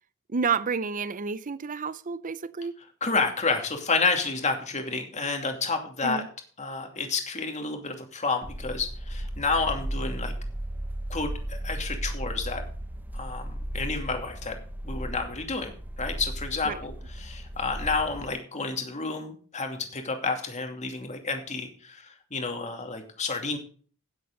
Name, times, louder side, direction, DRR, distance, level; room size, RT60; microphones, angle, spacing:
voice 1, 0.3-2.8 6.0-6.3 16.6-16.8, right 5 dB, 40° right, 0.6 m, -30 dB
voice 2, 3.0-6.2 6.6-10.3 11.1-12.6 13.1-14.6 14.8-23.6, left 4 dB, 35° left, 2.6 m, -30 dB
sound 1, 8.4-18.3, right 1 dB, 10° right, 0.9 m, -35 dB
17.0 x 7.8 x 4.0 m
head